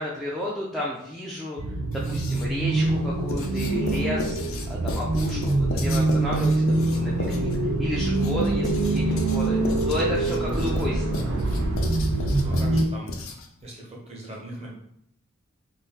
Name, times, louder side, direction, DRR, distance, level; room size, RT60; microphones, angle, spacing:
voice 1, 0.0-1.6 1.9-4.4 4.7-11.4, equal, ahead, -7 dB, 0.3 m, -32 dB
sound 1, 1.6-12.8, right 2 dB, 70° right, 0.4 m, -24 dB
Writing, 1.9-2.6 3.3-13.6, left 2 dB, 80° left, 0.5 m, -35 dB
voice 2, 10.3-10.6 12.1-13.2 13.6-14.7, right 1 dB, 30° right, -3 dB, 0.8 m, -39 dB
2.6 x 2.6 x 3.7 m, 0.72 s
head